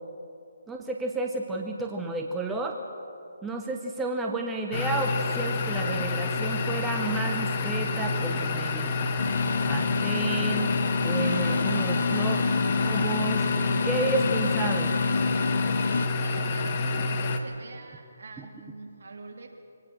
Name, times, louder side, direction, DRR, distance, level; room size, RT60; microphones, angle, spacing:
voice 1, 0.7-2.8 3.4-8.9 9.7-10.7 11.0-12.4 12.8-13.5 13.8-14.9, right 3 dB, 5° right, 1 dB, 0.9 m, -31 dB
sound 1, 4.7-17.4, left 3 dB, 35° left, 1.3 m, -28 dB
sound 2, 5.0-16.1, left 4 dB, 75° left, 1.1 m, -30 dB
voice 2, 15.8-19.5, right 3 dB, 60° right, 1 dB, 3.1 m, -45 dB
23.0 x 18.0 x 6.2 m, 2.6 s
hypercardioid pair, 160°, 0 cm